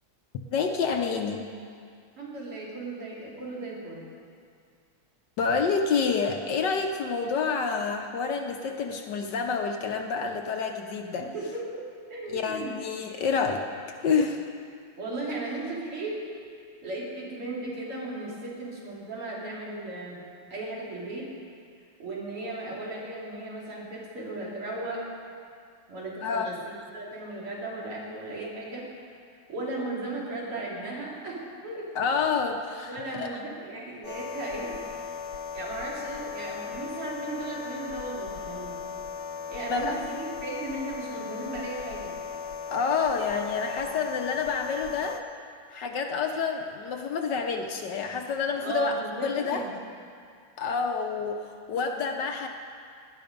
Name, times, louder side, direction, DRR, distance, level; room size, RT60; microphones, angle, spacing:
voice 1, 0.5-1.5 5.4-11.3 12.3-14.5 26.2-26.5 31.9-33.3 39.7-40.0 42.7-45.2 45.7-49.6 50.6-52.5, left 5 dB, 60° left, 4 dB, 1.3 m, -28 dB
voice 2, 2.2-4.0 11.3-11.8 12.1-12.7 15.0-16.2 16.8-20.2 20.5-21.3 22.0-25.0 25.9-28.9 29.5-32.4 32.9-34.8 35.5-38.8 39.5-42.1 48.6-49.7, right 2 dB, 85° right, -5 dB, 4.0 m, -36 dB
sound 1, 34.0-45.2, left 6 dB, 85° left, 1.6 m, -37 dB
18.0 x 11.0 x 5.3 m, 2.2 s
omnidirectional pair, 2.4 m